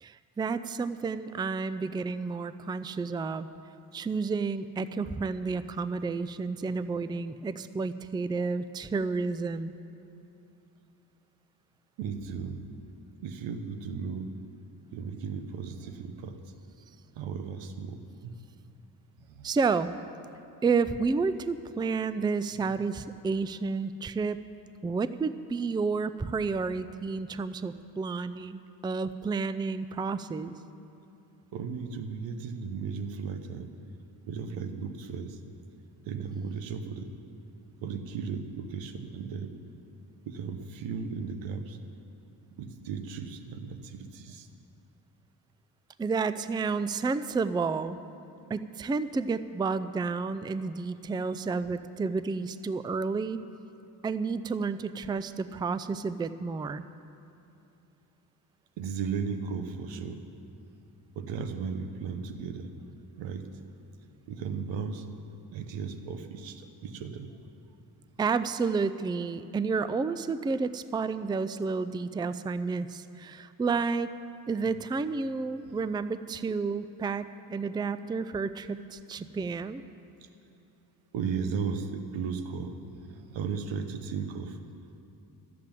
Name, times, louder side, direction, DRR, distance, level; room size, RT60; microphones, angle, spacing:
voice 1, 0.0-3.5 3.9-9.7 19.4-19.9 20.6-24.4 24.8-30.5 46.0-48.0 48.5-53.4 54.0-56.9 68.2-74.1 74.5-79.8, right 4 dB, 10° right, 13 dB, 0.4 m, -30 dB
voice 2, 12.0-12.7 13.2-14.3 14.9-16.4 17.2-18.0 18.2-18.4 19.3-19.5 31.5-33.7 34.3-35.4 36.0-37.1 37.8-39.5 40.3-41.8 42.6-44.5 58.8-60.2 61.2-62.7 63.2-63.5 64.3-65.0 65.5-67.3 79.2-79.3 81.1-84.6, right 6 dB, 90° right, 9 dB, 1.0 m, -35 dB
13.0 x 7.7 x 8.9 m, 2.7 s
cardioid pair, 70°, 43 cm